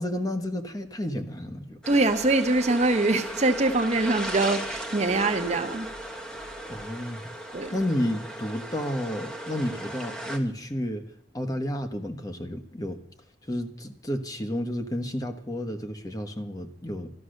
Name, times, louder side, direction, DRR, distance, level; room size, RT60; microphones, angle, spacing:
voice 1, 0.0-1.8 6.7-7.3 7.7-11.0 11.3-13.0 13.4-17.1, left 1 dB, 20° left, 1.3 m, -31 dB
sound 1, 1.8-10.4, right 1 dB, 5° left, 1.4 m, -36 dB
voice 2, 1.9-5.9 7.5-7.7, right 2 dB, 40° right, 1.0 m, -23 dB
13.5 x 13.0 x 6.5 m
head